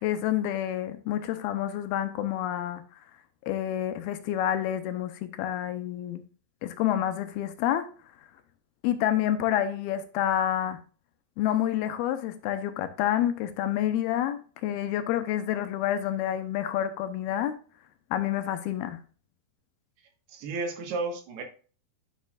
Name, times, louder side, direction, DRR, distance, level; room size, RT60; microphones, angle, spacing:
voice 1, 0.0-2.8 3.4-6.2 6.6-7.9 8.8-10.8 11.4-17.6 18.1-19.0, left 11 dB, 80° left, 2.5 m, -28 dB
voice 2, 20.3-21.4, right 3 dB, 75° right, 3.5 m, -32 dB
10.5 x 6.2 x 2.4 m
omnidirectional pair, 4.7 m